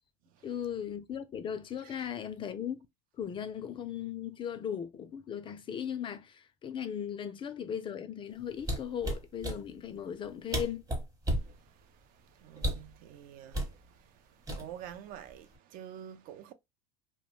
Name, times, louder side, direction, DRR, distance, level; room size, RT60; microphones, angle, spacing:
voice 1, 0.4-2.8 3.2-10.9, left 8 dB, 30° left, 0.3 m, -37 dB
sound 1, 8.6-9.6 10.2-10.3 10.5-11.5 12.6-12.9 13.5-13.8 14.5-14.9 15.3-15.6, right 1 dB, 20° right, 0.9 m, -32 dB
voice 2, 11.3-16.5, right 10 dB, 50° right, 0.4 m, -49 dB
2.6 x 2.1 x 3.0 m
hypercardioid pair, 95°, 18 cm